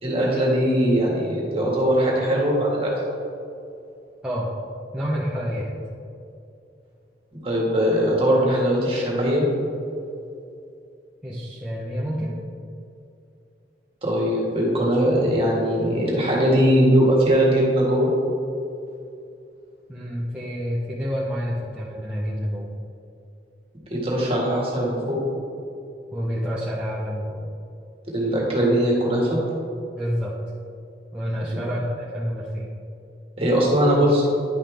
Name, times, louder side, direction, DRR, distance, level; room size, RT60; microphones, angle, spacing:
voice 1, 0.0-2.9 7.4-9.4 14.0-18.1 23.9-25.2 28.1-29.4 31.5-31.6 33.4-34.2, equal, 30° right, -4 dB, 1.9 m, -20 dB
voice 2, 4.9-5.8 11.2-12.3 19.9-22.7 26.1-27.4 29.9-30.3 31.1-32.7, equal, 5° right, -8 dB, 0.8 m, -28 dB
10.5 x 5.6 x 3.4 m, 2.6 s
head